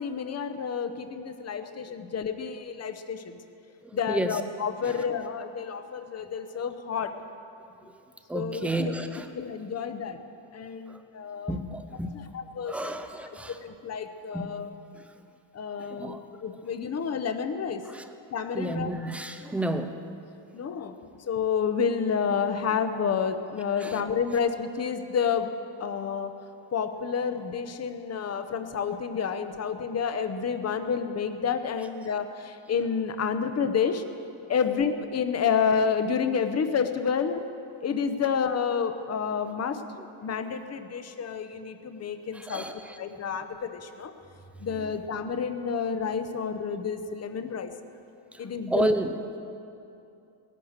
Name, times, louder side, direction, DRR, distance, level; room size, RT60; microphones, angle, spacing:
voice 1, 0.0-3.4 3.9-7.1 8.3-8.9 9.3-10.2 10.5-11.5 12.3-12.9 13.5-14.7 15.5-16.1 16.4-17.8 18.3-18.9 20.5-25.5 25.8-26.3 26.7-34.0 34.5-37.4 37.8-39.8 40.2-42.6 42.9-44.1 44.6-47.7 48.4-48.9, left 6 dB, 30° left, 8 dB, 0.8 m, -29 dB
voice 2, 1.6-2.1 3.8-4.4 4.8-5.1 8.3-9.3 10.9-11.0 11.5-12.2 12.7-13.6 14.3-14.6 14.9-15.1 15.8-16.2 17.8-18.1 18.5-20.0 23.8-24.1 40.0-40.1 42.3-43.0 44.7-44.9 48.3-49.2, right 1 dB, 5° right, 7 dB, 0.5 m, -32 dB
18.5 x 11.0 x 6.5 m, 2.7 s
cardioid pair, 175°, 50 cm